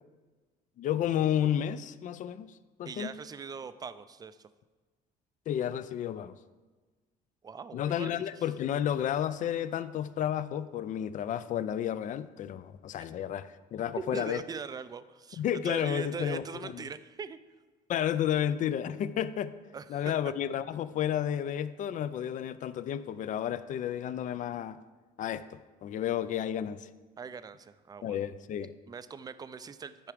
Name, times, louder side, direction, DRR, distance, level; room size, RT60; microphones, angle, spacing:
voice 1, 0.8-2.5 2.8-3.1 5.5-6.3 7.7-14.4 15.4-16.8 17.9-19.5 19.9-24.8 25.2-26.9 28.0-28.7, left 10 dB, 50° left, 15 dB, 0.4 m, -31 dB
voice 2, 2.9-4.5 7.4-8.5 14.0-17.4 19.7-20.1 27.2-28.3 28.9-30.1, right 5 dB, 25° right, 13 dB, 0.4 m, -41 dB
10.0 x 4.7 x 5.0 m, 1.3 s
cardioid pair, 110°, 17 cm